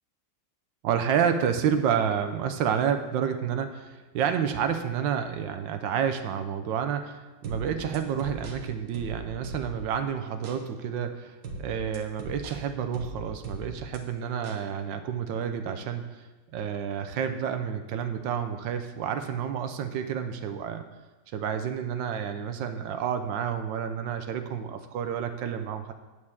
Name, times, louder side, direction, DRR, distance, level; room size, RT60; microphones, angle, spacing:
voice 1, 0.8-16.3 16.5-20.8 21.3-25.9, right 8 dB, 80° right, 8 dB, 1.3 m, -29 dB
sound 1, 7.4-10.0 10.4-10.6 11.4-14.0 14.4-14.6, right 3 dB, 65° right, 1.6 m, -39 dB
8.8 x 4.7 x 7.3 m, 1.2 s
omnidirectional pair, 2.0 m